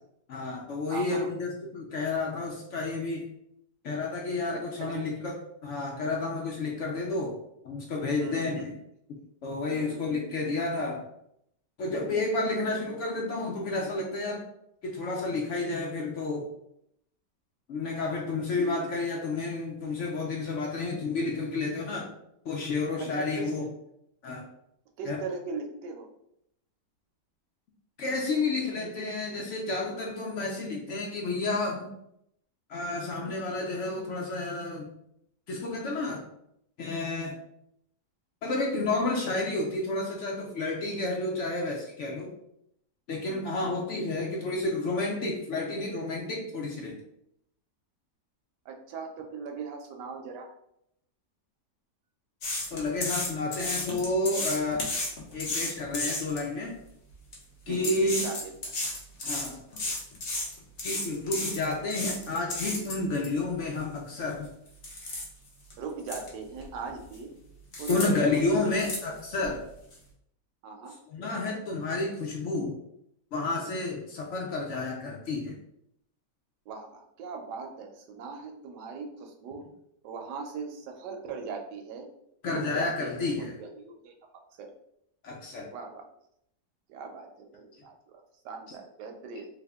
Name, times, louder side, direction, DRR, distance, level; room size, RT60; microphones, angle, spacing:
voice 1, 0.3-3.3 3.8-7.3 7.6-8.7 9.4-11.0 11.8-14.4 14.8-16.5 17.7-22.1 22.5-23.7 24.2-24.4 25.0-25.2 28.0-31.9 32.7-34.9 35.5-36.2 36.8-37.3 38.4-42.3 43.1-46.9 52.7-54.9 55.3-56.7 57.7-58.2 59.2-59.6 60.8-64.5 67.9-69.6 71.1-72.8 73.3-75.6 82.4-83.5 85.2-85.7, left 3 dB, 80° left, -1 dB, 0.6 m, -30 dB
voice 2, 0.9-1.3 4.5-5.1 8.2-8.7 9.7-10.2 18.2-18.5 23.0-23.7 25.0-26.1 33.2-33.5 43.2-43.8 48.7-50.5 57.7-58.7 65.8-67.3 67.8-68.6 69.1-69.2 70.6-71.0 76.7-79.6 80.0-82.1 82.5-84.1 84.6-84.7 85.7-86.0 86.9-89.5, right 5 dB, 75° right, 4 dB, 1.1 m, -40 dB
sound 1, 52.4-56.4 57.1-57.3 57.7-63.3 63.8-63.9 64.3-64.5 64.8-65.3 65.7-65.8 66.1-66.3 66.6-67.2 67.7-68.1 68.4-69.5 69.9-70.0, left 2 dB, 45° left, 0.8 m, -33 dB
3.4 x 2.2 x 3.4 m, 0.76 s
omnidirectional pair, 1.9 m